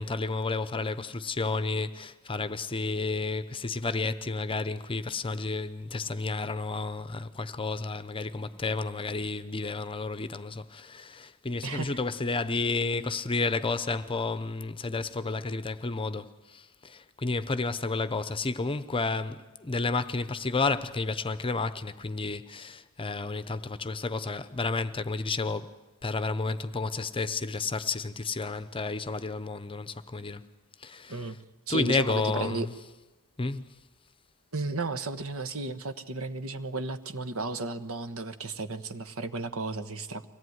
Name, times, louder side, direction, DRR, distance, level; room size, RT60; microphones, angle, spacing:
voice 1, 0.0-25.7 26.0-30.4 30.8-31.3 31.7-32.7 33.4-33.6, left 3 dB, 25° left, 0.8 m, -31 dB
voice 2, 11.6-12.0 31.1-31.4 31.7-32.7 34.5-40.3, right 3 dB, 65° right, 1.3 m, -34 dB
24.0 x 17.5 x 9.5 m
head